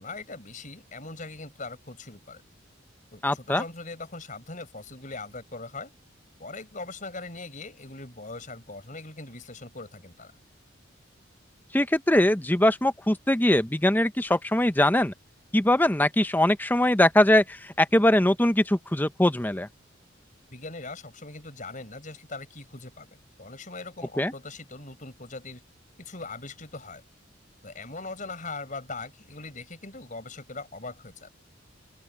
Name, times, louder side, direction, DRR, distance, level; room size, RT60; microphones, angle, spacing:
voice 1, 0.0-2.4 3.1-5.9 6.4-10.3 20.5-23.1 23.4-25.6 26.0-27.0 27.6-31.3, left 3 dB, 40° left, 5.5 m, -40 dB
voice 2, 3.2-3.6 11.7-15.1 15.5-19.7 24.2-24.3, left 1 dB, 10° left, 0.8 m, -22 dB
open air
head